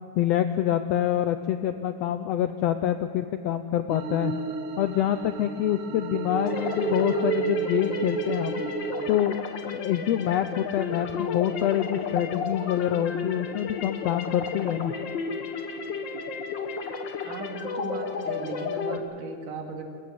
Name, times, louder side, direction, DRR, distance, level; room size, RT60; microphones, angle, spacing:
voice 1, 0.2-4.3 4.8-8.6 9.1-9.4 9.7-14.9, left 11 dB, 85° left, 9 dB, 1.4 m, -26 dB
sound 1, 3.9-9.2, right 6 dB, 60° right, 1.6 m, -31 dB
sound 2, 6.4-19.0, left 5 dB, 60° left, 1.2 m, -33 dB
voice 2, 17.2-19.8, right 3 dB, 80° right, 3 dB, 3.7 m, -37 dB
22.5 x 15.5 x 8.8 m, 2.3 s
omnidirectional pair, 3.6 m